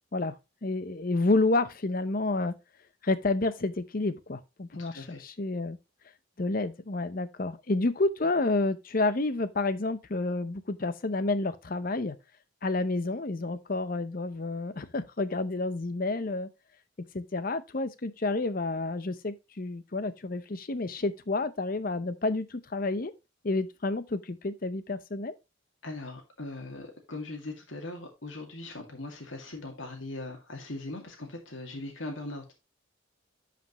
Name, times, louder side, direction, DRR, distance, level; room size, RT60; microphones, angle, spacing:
voice 1, 0.6-2.6 3.0-5.8 6.4-12.1 12.6-16.5 17.1-23.1 23.4-25.3, left 2 dB, 45° left, 0.7 m, -29 dB
voice 2, 4.8-5.2 25.8-32.5, left 2 dB, 85° left, 2.1 m, -40 dB
11.0 x 5.1 x 3.0 m
head